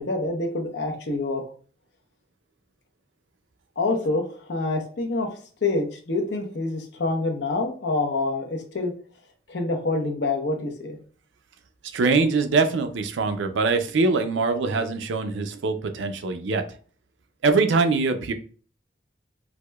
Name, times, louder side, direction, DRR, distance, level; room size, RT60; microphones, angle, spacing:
voice 1, 0.0-1.4 3.8-5.3 5.6-8.9 9.5-11.0, left 2 dB, 65° left, 2 dB, 0.7 m, -26 dB
voice 2, 11.9-16.7 17.4-18.3, right 4 dB, 85° right, 8 dB, 0.4 m, -23 dB
4.7 x 2.1 x 2.2 m, 0.42 s
head